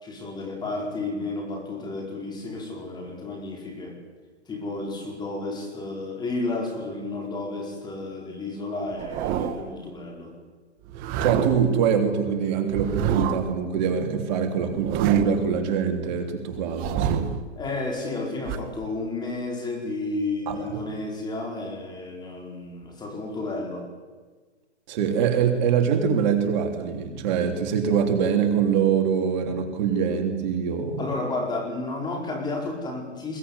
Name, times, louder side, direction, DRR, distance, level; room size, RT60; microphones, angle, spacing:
voice 1, 0.0-4.0 4.5-10.3 17.6-23.9 31.0-33.4, left 2 dB, 10° left, 2 dB, 4.7 m, -32 dB
sound 1, 8.9-9.8 10.8-11.8 12.7-13.6 14.6-15.5 16.6-17.4 18.5-18.6, right 8 dB, 25° right, 1.5 m, -28 dB
voice 2, 11.2-17.4 20.5-20.8 24.9-31.1, right 7 dB, 40° right, 4 dB, 3.4 m, -24 dB
22.0 x 21.0 x 9.7 m, 1.4 s
hypercardioid pair, 145°, 35 cm